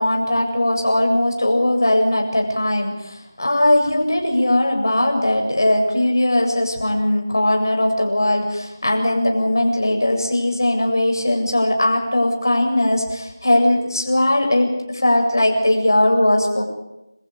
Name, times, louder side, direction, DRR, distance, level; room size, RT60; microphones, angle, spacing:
voice 1, 0.0-16.6, left 1 dB, 60° left, 2 dB, 7.7 m, -19 dB
28.0 x 15.0 x 8.7 m, 0.93 s
figure-of-eight pair, 175°, 2 cm